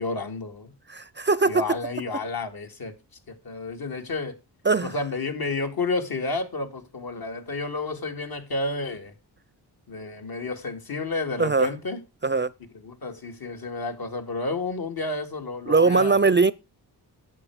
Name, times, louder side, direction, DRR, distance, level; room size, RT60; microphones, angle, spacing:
voice 1, 0.0-0.7 1.5-2.9 3.3-4.4 4.8-9.1 9.9-12.0 12.7-16.2, left 3 dB, 60° left, 2.6 m, -31 dB
voice 2, 0.9-1.8 4.7-4.9 11.4-11.7 12.2-12.5 15.7-16.5, right 4 dB, 25° right, 0.5 m, -21 dB
11.0 x 8.3 x 4.9 m
cardioid pair, 60°, 42 cm